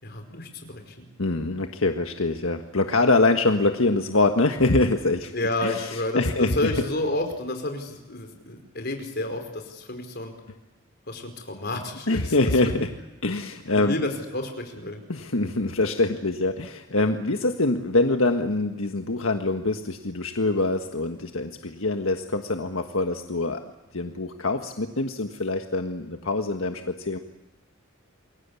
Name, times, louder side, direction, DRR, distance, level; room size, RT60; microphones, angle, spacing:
voice 1, 0.0-1.1 5.3-10.3 11.1-12.3 12.8-12.9 13.8-15.0, left 2 dB, 50° left, 5 dB, 4.9 m, -30 dB
voice 2, 1.2-5.3 5.6-5.9 6.1-6.7 12.1-12.9 13.2-13.9 15.1-23.6 23.9-27.2, left 2 dB, 80° left, 5 dB, 1.6 m, -24 dB
29.0 x 22.5 x 8.5 m, 1.1 s
head